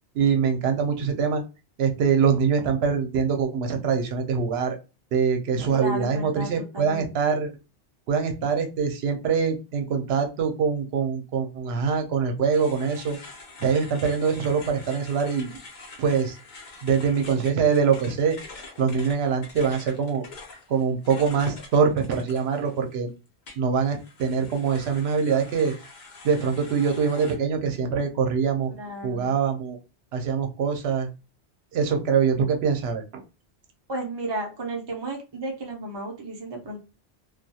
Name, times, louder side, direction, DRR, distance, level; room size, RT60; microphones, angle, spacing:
voice 1, 0.1-1.4 1.8-4.7 5.1-7.5 8.1-13.2 13.6-15.5 16.0-16.4 16.8-18.4 18.8-20.2 20.7-23.1 23.6-25.7 26.2-28.7 29.0-29.8 30.1-31.1 31.7-33.2, right 6 dB, 70° right, 4 dB, 0.8 m, -24 dB
voice 2, 5.7-7.1 28.8-29.4 33.9-36.8, right 1 dB, 40° right, 0 dB, 0.4 m, -33 dB
sound 1, 12.5-23.0 23.5-27.4, left 3 dB, 50° left, 0.7 m, -45 dB
2.3 x 2.2 x 2.7 m, 0.29 s
omnidirectional pair, 1.1 m